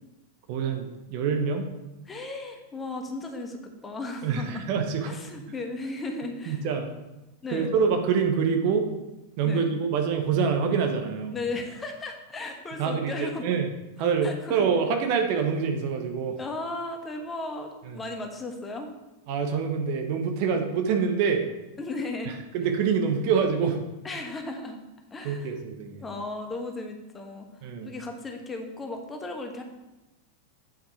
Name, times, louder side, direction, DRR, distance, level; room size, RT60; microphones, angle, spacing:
voice 1, 0.5-1.7 4.2-5.2 6.5-6.9 7.5-8.9 9.4-11.3 12.8-13.7 14.0-16.4 17.8-18.0 19.3-21.4 22.3-23.8 25.2-26.0 27.6-27.9, right 6 dB, 45° right, 5 dB, 1.1 m, -26 dB
voice 2, 2.1-4.7 5.1-6.6 7.4-7.7 9.4-9.8 11.3-13.5 14.2-14.6 16.4-18.9 21.8-22.3 24.0-24.8 25.1-25.5 26.0-27.5 27.8-29.6, left 2 dB, 15° left, 3 dB, 1.2 m, -35 dB
8.8 x 5.6 x 4.3 m, 1.0 s
figure-of-eight pair, 90°, 0 cm